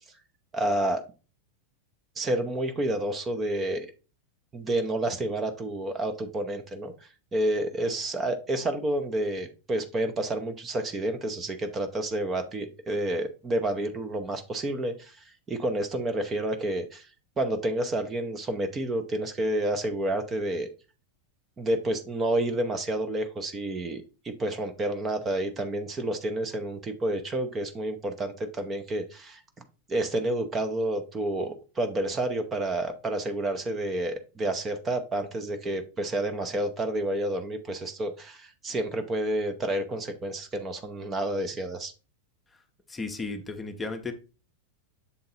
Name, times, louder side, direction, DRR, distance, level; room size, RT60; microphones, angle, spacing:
voice 1, 0.5-1.0 2.2-3.9 4.5-6.9 7.3-15.2 15.5-17.1 17.4-20.7 21.6-29.4 29.9-41.9, right 1 dB, 20° right, 7 dB, 0.8 m, -29 dB
voice 2, 42.9-44.1, left 3 dB, 15° left, 6 dB, 0.8 m, -34 dB
7.1 x 3.8 x 4.0 m, 0.33 s
figure-of-eight pair, 90°, 0 cm